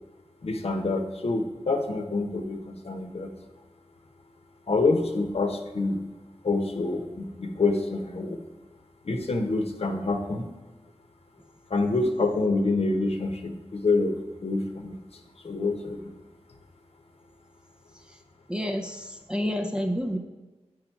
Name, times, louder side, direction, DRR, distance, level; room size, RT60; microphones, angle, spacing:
voice 1, 0.4-3.3 4.7-6.0 6.4-8.4 9.0-10.5 11.7-14.2 14.4-16.1, left 3 dB, 60° left, 4 dB, 0.9 m, -27 dB
voice 2, 18.5-20.2, equal, 5° right, 4 dB, 0.5 m, -29 dB
8.5 x 5.0 x 4.5 m, 1.2 s
wide cardioid pair, 110°, 12 cm